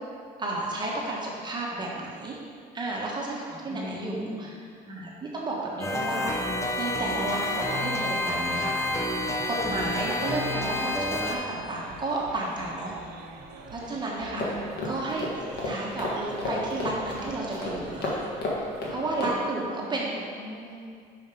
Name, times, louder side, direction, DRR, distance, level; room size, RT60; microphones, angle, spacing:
voice 1, 0.4-2.4 2.7-4.2 4.9-6.3 6.8-8.9 9.5-12.9 13.7-14.4 14.8-15.2 15.6-18.2 18.9-20.2, right 2 dB, 25° right, -4 dB, 1.2 m, -32 dB
voice 2, 3.7-4.6 9.6-9.9 14.3-15.2 19.2-21.0, equal, 45° left, -4 dB, 1.7 m, -40 dB
sound 1, 5.8-11.3, left 1 dB, 15° left, 0.7 m, -29 dB
sound 2, 8.0-18.3, right 3 dB, 85° right, 0.8 m, -45 dB
sound 3, 14.4-19.3, left 2 dB, 70° left, 1.7 m, -33 dB
5.8 x 5.2 x 5.2 m, 2.2 s
cardioid pair, 110°, 17 cm